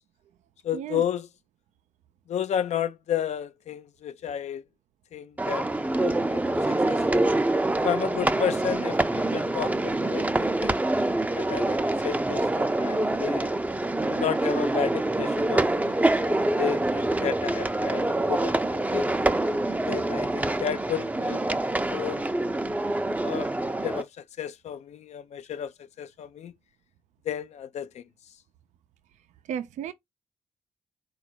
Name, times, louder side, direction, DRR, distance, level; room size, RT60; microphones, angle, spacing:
voice 1, 0.6-1.3 2.3-4.6 5.1-5.7 6.0-7.3 7.8-10.8 11.3-13.5 14.1-19.1 19.9-21.5 21.9-22.3 23.2-25.7 26.0-26.5 27.3-28.0, left 9 dB, 65° left, 0.5 m, -32 dB
sound 1, 5.4-24.0, right 2 dB, 10° right, 0.5 m, -26 dB
voice 2, 29.5-29.9, right 9 dB, 75° right, 0.4 m, -33 dB
4.0 x 2.4 x 4.4 m
supercardioid pair, 45°, 12 cm